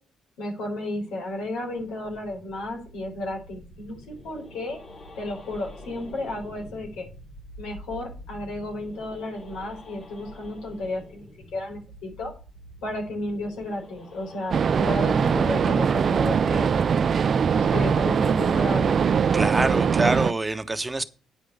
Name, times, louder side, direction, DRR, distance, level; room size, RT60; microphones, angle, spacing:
voice 1, 0.4-4.8 5.2-7.1 7.6-12.3 12.8-16.7 17.5-19.0, left 1 dB, 90° left, 4.1 m, -33 dB
sound 1, 1.1-18.1, left 1 dB, 60° left, 3.1 m, -46 dB
sound 2, 14.5-20.3, right 6 dB, 50° right, 0.4 m, -22 dB
voice 2, 19.3-21.0, right 2 dB, 15° right, 1.0 m, -25 dB
9.2 x 5.1 x 8.0 m
cardioid pair, 90°, 0 cm